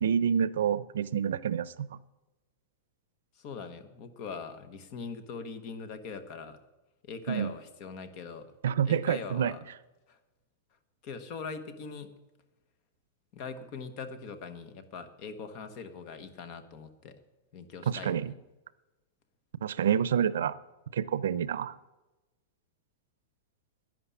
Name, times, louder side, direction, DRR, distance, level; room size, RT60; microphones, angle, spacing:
voice 1, 0.0-1.9 7.3-7.5 8.6-9.5 17.9-18.3 19.6-20.5 20.9-21.7, right 8 dB, 85° right, 17 dB, 0.6 m, -28 dB
voice 2, 3.4-6.6 7.0-8.5 8.8-9.6 10.1-10.2 11.0-12.1 13.3-17.1 17.5-18.3, left 5 dB, 30° left, 10 dB, 1.1 m, -41 dB
11.5 x 10.5 x 8.4 m, 1.1 s
supercardioid pair, 180°, 0 cm